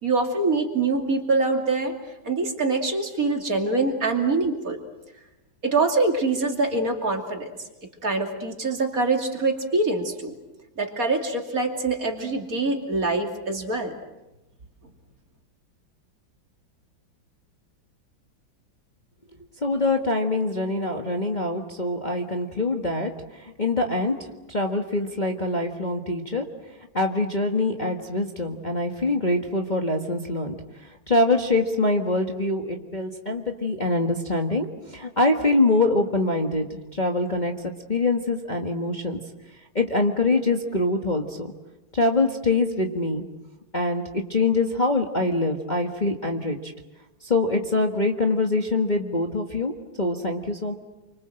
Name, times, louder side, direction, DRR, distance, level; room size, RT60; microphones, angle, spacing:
voice 1, 0.0-1.9 2.2-4.8 5.6-7.5 8.0-10.3 10.8-13.9, right 3 dB, 45° right, 3 dB, 3.1 m, -24 dB
voice 2, 19.6-24.2 24.5-26.4 26.9-30.5 31.1-34.7 34.9-36.7 36.9-39.2 39.7-41.5 41.9-43.2 43.7-46.7 47.2-49.7 50.0-50.7, left 2 dB, 25° left, 2 dB, 1.6 m, -24 dB
29.0 x 25.0 x 7.8 m, 1.0 s
omnidirectional pair, 2.1 m